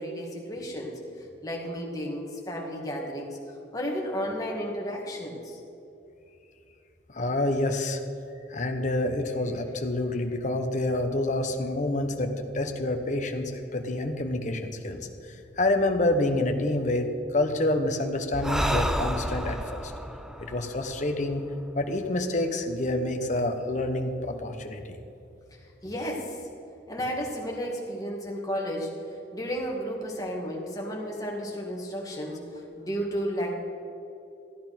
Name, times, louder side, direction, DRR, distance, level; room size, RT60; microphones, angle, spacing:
voice 1, 0.0-5.6 25.8-26.4 26.9-28.9 29.3-33.5, equal, 20° left, -1 dB, 2.0 m, -33 dB
voice 2, 7.1-8.0 8.5-15.0 15.6-17.1 17.3-19.9 20.4-21.4 21.7-25.0, left 1 dB, 40° left, 5 dB, 1.1 m, -27 dB
Breathing, 18.3-21.9, equal, 5° right, 0.5 m, -31 dB
14.5 x 9.5 x 5.9 m, 2.8 s
head